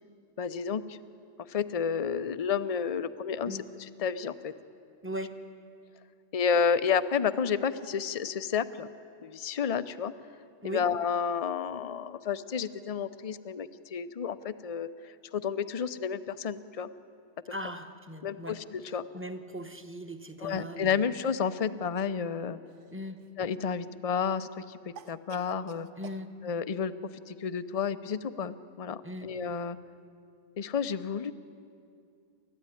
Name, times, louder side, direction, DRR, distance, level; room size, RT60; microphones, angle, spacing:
voice 1, 0.4-1.0 1.5-4.5 6.3-8.9 9.2-10.1 10.6-16.9 18.2-19.1 20.4-22.6 23.4-25.9 26.4-26.9 27.3-29.8 30.6-31.3, left 6 dB, 40° left, 13 dB, 0.6 m, -31 dB
voice 2, 5.0-5.3 10.6-10.8 17.5-18.6 19.1-21.0 22.9-23.2 26.0-26.3 29.0-29.3, equal, 10° right, 6 dB, 1.1 m, -39 dB
Cough, 22.7-23.5 25.0-26.2, right 7 dB, 80° right, 1.1 m, -49 dB
29.0 x 13.5 x 9.9 m, 2.4 s
omnidirectional pair, 1.2 m